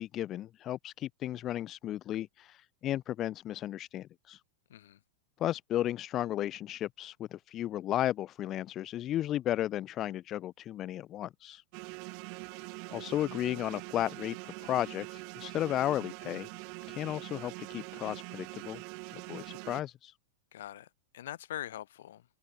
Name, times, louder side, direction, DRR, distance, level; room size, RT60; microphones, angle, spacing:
voice 1, 0.0-4.4 5.4-11.6 12.5-12.6 12.9-16.5 16.9-18.8 19.1-20.1, left 12 dB, 35° left, 1.1 m, -34 dB
sound 1, 11.7-19.8, right 37 dB, 50° right, 1.3 m, -44 dB
voice 2, 20.5-22.3, left 12 dB, 70° left, 6.2 m, -43 dB
hypercardioid pair, 110°, 0 cm